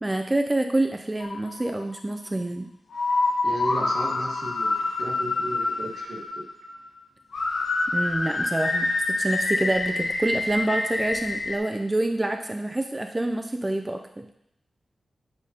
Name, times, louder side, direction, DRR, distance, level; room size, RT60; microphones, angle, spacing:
voice 1, 0.0-2.7 7.9-14.3, right 1 dB, 15° right, 4 dB, 0.3 m, -27 dB
sound 1, 1.2-2.0 2.9-6.9 7.3-11.6, left 2 dB, 65° left, 0.7 m, -27 dB
voice 2, 3.4-6.5, right 1 dB, 75° right, -1 dB, 1.3 m, -35 dB
8.3 x 5.0 x 2.8 m, 0.77 s
wide cardioid pair, 150°, 0 cm